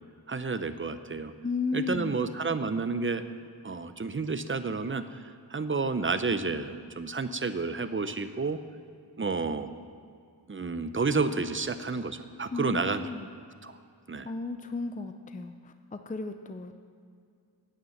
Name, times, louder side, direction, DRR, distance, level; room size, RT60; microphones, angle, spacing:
voice 1, 0.3-1.3 1.7-3.2 3.6-8.6 9.2-9.7 10.5-13.0 13.6-13.8 14.1-14.3, right 4 dB, 25° right, 11 dB, 0.6 m, -30 dB
voice 2, 1.4-2.2 12.5-13.3 14.2-16.8, left 3 dB, 20° left, 8 dB, 0.5 m, -34 dB
9.5 x 8.8 x 7.2 m, 2.3 s
wide cardioid pair, 60°, 46 cm